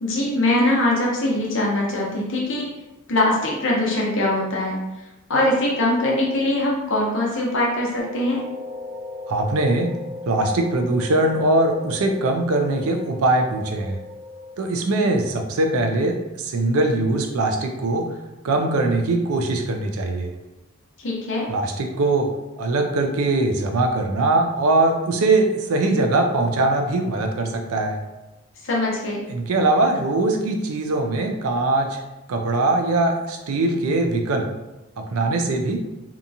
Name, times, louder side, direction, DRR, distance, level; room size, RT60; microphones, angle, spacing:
voice 1, 0.0-2.7 3.1-4.8 5.3-8.4 21.0-21.5 28.6-29.2, left 1 dB, 60° left, -3 dB, 0.7 m, -22 dB
sound 1, 8.0-14.5, left 2 dB, 35° right, 0.7 m, -37 dB
voice 2, 9.3-9.9 10.2-14.0 14.6-18.1 18.4-20.3 21.5-22.3 22.6-28.0 29.3-32.0 32.3-34.5 35.0-35.8, right 2 dB, 85° right, 4 dB, 0.4 m, -21 dB
2.8 x 2.4 x 2.6 m, 1.0 s
head